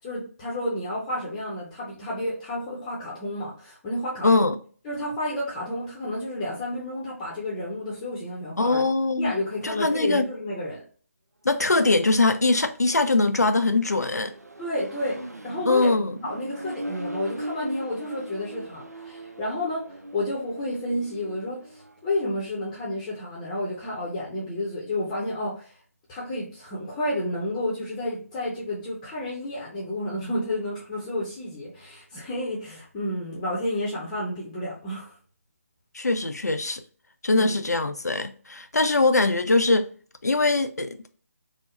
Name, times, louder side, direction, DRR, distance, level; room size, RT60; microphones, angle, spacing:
voice 1, 0.0-4.5 4.8-8.8 9.2-10.8 14.6-15.2 15.4-15.9 16.2-25.7 26.1-35.1 37.4-37.5, left 1 dB, 15° left, 0.7 m, -31 dB
voice 2, 4.2-4.5 8.6-9.4 9.6-10.2 11.4-14.3 15.7-16.1 35.9-36.8 37.2-39.9 40.2-41.1, left 3 dB, 90° left, 0.4 m, -22 dB
Accelerating revving vroom, 11.9-22.0, right 1 dB, 85° right, 0.6 m, -40 dB
3.6 x 2.1 x 3.0 m
figure-of-eight pair, 150°, 9 cm